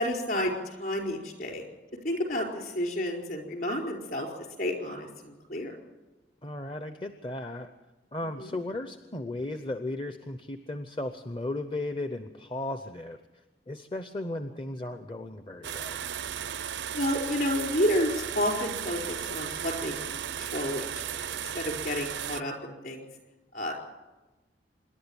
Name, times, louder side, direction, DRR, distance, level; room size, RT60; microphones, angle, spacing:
voice 1, 0.0-1.6 2.0-4.3 4.6-5.8 8.4-8.5 16.9-23.1 23.5-23.7, left 1 dB, 50° left, 2 dB, 4.7 m, -31 dB
voice 2, 6.4-7.7 8.1-13.2 13.7-16.0, left 2 dB, 25° left, 8 dB, 0.7 m, -35 dB
sound 1, 15.6-22.4, right 9 dB, 70° right, 0.6 m, -35 dB
26.5 x 11.0 x 8.9 m, 1.1 s
head